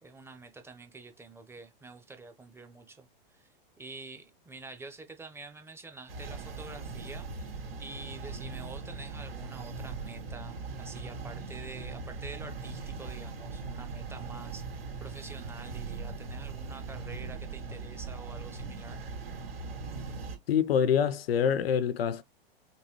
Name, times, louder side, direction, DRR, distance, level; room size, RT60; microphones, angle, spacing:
voice 1, 0.0-3.5 3.8-7.3 7.8-19.0, right 3 dB, 10° right, 0.7 m, -47 dB
sound 1, 6.1-20.4, right 4 dB, 85° right, 1.9 m, -40 dB
voice 2, 20.5-22.2, left 8 dB, 85° left, 0.6 m, -26 dB
5.3 x 2.3 x 3.0 m
hypercardioid pair, 120°, 29 cm